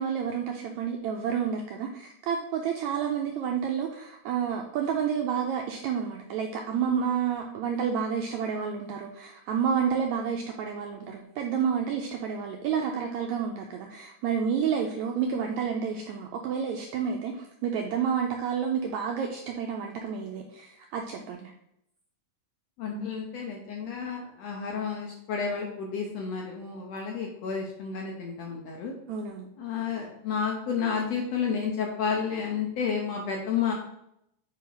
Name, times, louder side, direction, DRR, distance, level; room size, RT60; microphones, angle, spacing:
voice 1, 0.0-21.5 22.9-23.1 29.1-29.5, right 7 dB, 85° right, 2 dB, 1.6 m, -30 dB
voice 2, 22.8-28.9 29.6-33.7, left 6 dB, 75° left, 0 dB, 1.6 m, -31 dB
5.5 x 5.2 x 3.8 m, 0.77 s
omnidirectional pair, 3.8 m